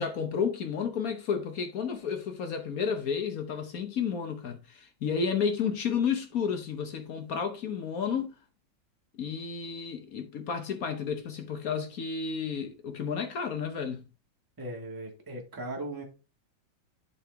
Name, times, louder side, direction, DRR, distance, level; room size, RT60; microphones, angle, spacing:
voice 1, 0.0-8.4 9.2-14.1, left 6 dB, 55° left, 1.1 m, -31 dB
voice 2, 14.6-16.0, right 1 dB, 10° right, 1.5 m, -38 dB
11.5 x 3.9 x 3.4 m
omnidirectional pair, 2.1 m